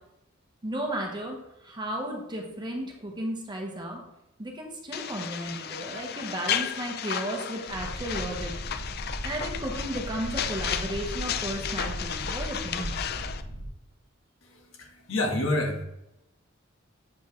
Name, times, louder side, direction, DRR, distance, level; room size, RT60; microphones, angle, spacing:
voice 1, 0.6-4.0 4.4-8.5 9.2-13.0, right 1 dB, 20° right, 1 dB, 1.1 m, -34 dB
sound 1, 4.9-13.4, left 9 dB, 50° left, 0.4 m, -34 dB
sound 2, 7.7-13.7, equal, 85° left, 2.5 m, -37 dB
voice 2, 14.4-15.8, left 1 dB, 70° left, 1 dB, 1.5 m, -29 dB
7.4 x 5.2 x 3.2 m, 0.86 s
head